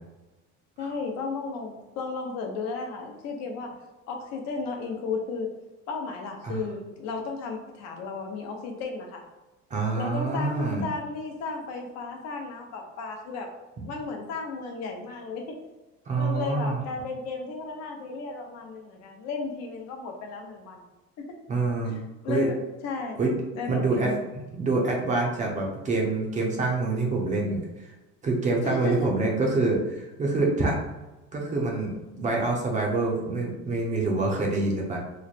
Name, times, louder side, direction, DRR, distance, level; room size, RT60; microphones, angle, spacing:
voice 1, 0.8-3.7 4.1-5.5 5.9-9.2 9.9-13.5 13.8-15.4 16.2-20.8 21.8-23.2 23.5-24.2 28.6-29.1, left 4 dB, 60° left, 2 dB, 0.7 m, -34 dB
voice 2, 9.7-10.9 16.1-16.8 21.5-22.0 22.3-22.5 23.2-23.3 23.7-24.1 24.5-27.6 28.2-30.8 31.3-35.0, right 3 dB, 25° right, -1 dB, 0.6 m, -26 dB
3.1 x 2.1 x 4.0 m, 1.1 s
cardioid pair, 160°, 29 cm